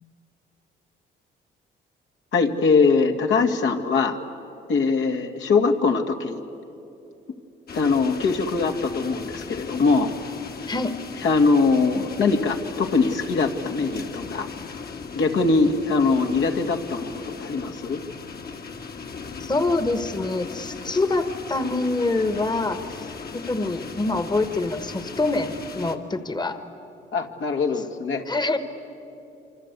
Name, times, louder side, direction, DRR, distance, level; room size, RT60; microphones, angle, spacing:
voice 1, 2.3-4.2 4.7-6.4 7.7-10.1 11.2-14.5 15.2-18.0 27.1-28.2, left 4 dB, 70° left, 3 dB, 2.1 m, -22 dB
sound 1, 7.7-26.0, left 5 dB, 50° left, 1.9 m, -37 dB
voice 2, 19.4-26.6 27.8-27.9 28.3-28.6, left 2 dB, 20° left, 10 dB, 1.4 m, -25 dB
27.0 x 24.5 x 8.2 m, 2.9 s
cardioid pair, 90°, 20 cm